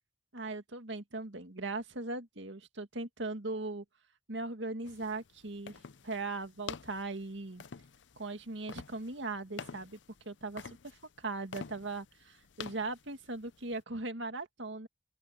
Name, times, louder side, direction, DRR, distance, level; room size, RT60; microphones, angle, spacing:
voice 1, 0.3-3.8 4.3-7.6 8.2-10.0 10.2-14.9, right 3 dB, 75° right, 2.1 m, -39 dB
sound 1, 4.8-13.8, left 6 dB, 75° left, 0.6 m, -49 dB
open air
head